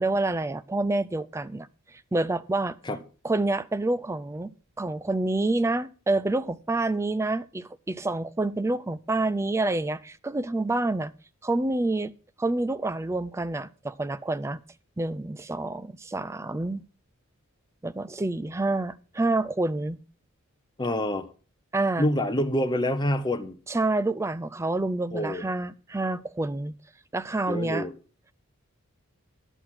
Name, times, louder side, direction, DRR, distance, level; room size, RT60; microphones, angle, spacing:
voice 1, 0.0-2.8 3.2-11.1 11.4-12.1 12.4-14.6 15.0-16.8 17.8-20.0 21.7-22.1 23.7-26.7 27.1-27.9, right 2 dB, 15° right, 0.4 m, -28 dB
voice 2, 20.8-21.3 22.0-23.6 25.1-25.4 27.5-27.9, left 1 dB, 20° left, 0.8 m, -26 dB
11.0 x 6.7 x 5.8 m
head